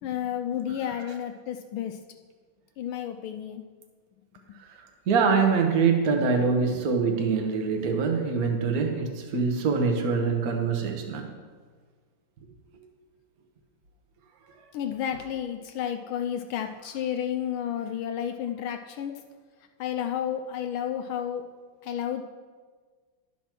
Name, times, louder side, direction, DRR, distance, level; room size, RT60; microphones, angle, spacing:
voice 1, 0.0-2.0 2.8-3.6 4.5-4.6 14.7-19.2 19.8-21.4 21.8-22.2, left 9 dB, 75° left, 5 dB, 1.3 m, -31 dB
voice 2, 4.6-11.3, right 5 dB, 50° right, 3 dB, 1.3 m, -24 dB
12.0 x 4.6 x 5.9 m, 1.5 s
omnidirectional pair, 2.4 m